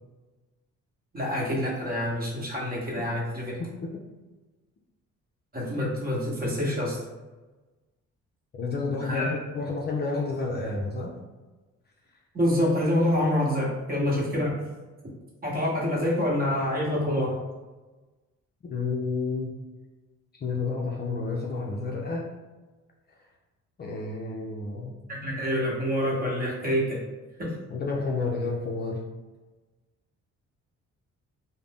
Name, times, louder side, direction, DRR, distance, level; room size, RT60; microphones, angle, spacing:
voice 1, 1.1-3.5 5.5-7.0 9.0-9.4 12.3-14.5 15.4-17.3 25.1-27.0 27.4-27.5, left 1 dB, 30° right, -4 dB, 1.0 m, -26 dB
voice 2, 8.6-11.1 18.6-19.5 20.4-22.3 23.8-25.0 27.7-29.0, left 3 dB, 35° left, -2 dB, 0.4 m, -30 dB
2.5 x 2.0 x 3.4 m, 1.2 s
cardioid pair, 90°, 30 cm